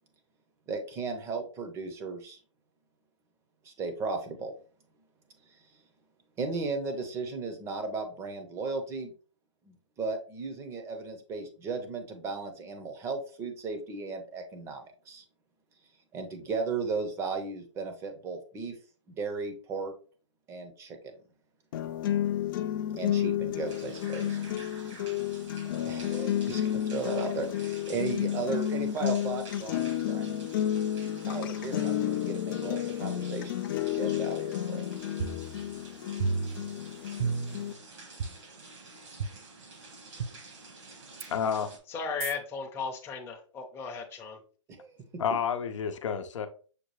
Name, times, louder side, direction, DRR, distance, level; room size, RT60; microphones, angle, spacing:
voice 1, 0.7-2.4 3.6-4.5 6.4-9.1 9.6-15.2 16.1-18.8 19.1-19.9 20.5-21.1 22.9-24.4 24.8-25.0 25.9-30.3 31.2-33.6 33.9-34.8 44.7-45.0, right 4 dB, 15° right, 0.7 m, -35 dB
sound 1, 21.7-37.7, left 11 dB, 45° left, 0.4 m, -31 dB
sound 2, 23.7-41.8, right 3 dB, 75° right, 1.8 m, -49 dB
sound 3, 35.2-35.9 36.2-36.8 37.2-37.7 38.2-38.3 39.2-39.3 40.2-40.3 41.2-41.3 42.2-42.3, right 5 dB, 55° right, 0.5 m, -32 dB
voice 2, 41.3-41.7 45.2-46.5, left 7 dB, 75° left, 0.7 m, -30 dB
voice 3, 41.9-44.4, left 5 dB, 15° left, 0.7 m, -36 dB
6.6 x 2.2 x 3.1 m
hypercardioid pair, 145°, 16 cm